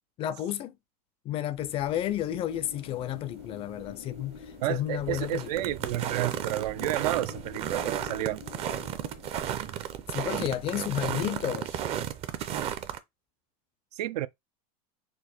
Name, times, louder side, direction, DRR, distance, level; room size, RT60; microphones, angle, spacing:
voice 1, 0.2-0.8 1.3-4.4 4.7-5.7 10.1-11.8, left 12 dB, 30° left, 0.4 m, -32 dB
sound 1, 1.6-13.0, right 10 dB, 30° right, 0.5 m, -34 dB
Wind, 2.5-11.2, left 7 dB, 80° left, 1.0 m, -48 dB
voice 2, 4.6-8.4 13.9-14.3, right 14 dB, 80° right, 0.4 m, -31 dB
4.4 x 2.5 x 4.2 m
supercardioid pair, 145°, 20 cm